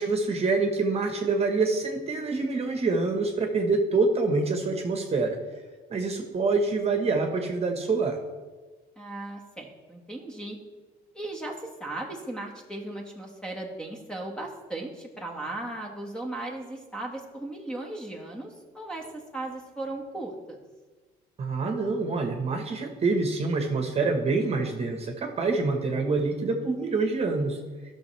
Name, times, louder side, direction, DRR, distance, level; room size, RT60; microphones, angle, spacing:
voice 1, 0.0-5.4 5.9-8.2 21.4-27.6, right 3 dB, 35° right, 4 dB, 1.4 m, -26 dB
voice 2, 9.0-10.6 11.1-20.6, right 2 dB, 5° left, 1 dB, 1.8 m, -37 dB
14.5 x 6.4 x 3.4 m, 1.3 s
cardioid pair, 110°, 17 cm